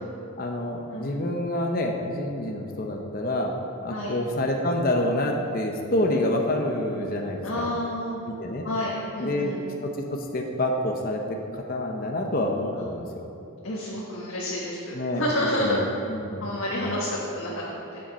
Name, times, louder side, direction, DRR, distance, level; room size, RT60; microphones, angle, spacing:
voice 1, 0.4-3.5 3.8-7.7 8.4-8.6 9.2-9.5 10.3-11.2 11.5-13.2 14.9-16.5 16.8-16.9, left 1 dB, 40° left, 2 dB, 0.8 m, -27 dB
voice 2, 7.4-8.2 8.6-9.7 13.6-15.9 16.4-18.0, left 1 dB, 65° left, -6 dB, 1.4 m, -29 dB
11.5 x 7.7 x 4.2 m, 2.8 s
head